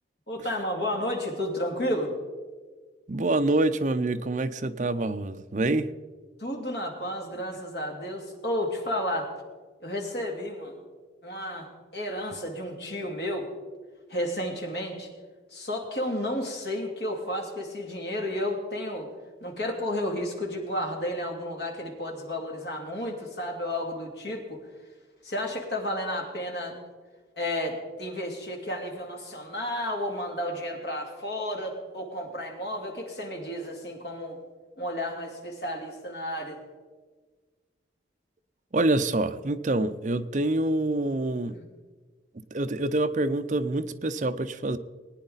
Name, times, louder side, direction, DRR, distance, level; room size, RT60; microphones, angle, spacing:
voice 1, 0.3-2.1 6.4-9.3 9.8-10.8 11.2-13.5 14.1-15.1 15.5-19.1 19.4-24.6 25.2-26.8 27.4-34.4 34.8-36.6 41.5-41.7, left 1 dB, 60° left, 1 dB, 2.4 m, -32 dB
voice 2, 3.1-5.9 38.7-41.5 42.5-44.8, right 2 dB, 40° right, 10 dB, 0.5 m, -26 dB
20.0 x 9.7 x 4.0 m, 1.4 s
head